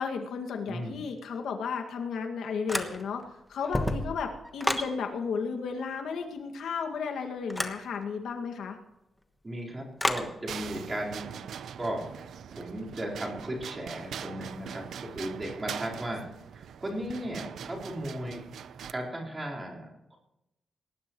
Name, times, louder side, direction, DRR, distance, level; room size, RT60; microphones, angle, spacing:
voice 1, 0.0-3.2 3.5-8.8, left 5 dB, 90° left, 4 dB, 2.0 m, -33 dB
voice 2, 0.7-1.0 9.4-11.4 11.8-12.0 12.5-16.2 16.5-18.4 18.9-20.2, right 1 dB, 20° right, -3 dB, 4.3 m, -36 dB
sound 1, 2.7-3.3 3.6-4.9 7.5-7.8 10.0-10.3, left 1 dB, 5° left, 1.2 m, -30 dB
sound 2, 10.5-18.9, right 8 dB, 80° right, 0.7 m, -42 dB
19.5 x 19.0 x 3.1 m, 0.91 s
wide cardioid pair, 175°, 0 cm